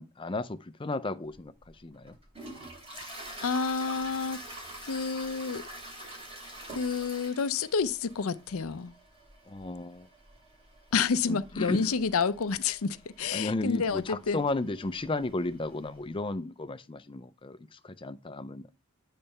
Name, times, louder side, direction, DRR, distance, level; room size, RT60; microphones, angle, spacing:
voice 1, 0.0-2.2 9.5-10.1 11.3-11.9 13.3-18.7, left 2 dB, 25° left, 0.5 m, -34 dB
Toilet flush, 1.3-16.1, right 1 dB, 25° right, 2.7 m, -47 dB
voice 2, 3.4-4.4 4.8-5.6 6.7-8.9 10.9-14.4, left 5 dB, 75° left, 0.6 m, -29 dB
8.8 x 3.3 x 5.4 m
head